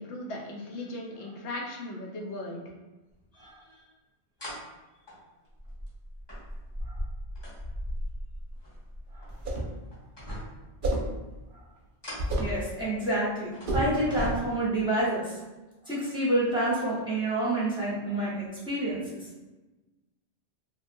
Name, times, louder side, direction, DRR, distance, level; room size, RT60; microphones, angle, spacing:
voice 1, 0.0-2.6, left 1 dB, 85° left, 0 dB, 0.9 m, -37 dB
sound 1, 3.4-3.5 4.4-4.6 5.1-9.6 9.9-10.7 11.8-13.0 13.5-13.7 14.1-14.8 15.8-15.9, equal, 25° left, 0.7 m, -38 dB
sound 2, 9.3-9.8 10.8-11.2 12.2-12.6 13.7-14.0, right 1 dB, 55° right, 0.7 m, -29 dB
voice 2, 12.3-15.4 15.9-19.1, right 1 dB, 5° right, -9 dB, 0.8 m, -28 dB
2.8 x 2.1 x 2.5 m, 1.1 s
omnidirectional pair, 1.1 m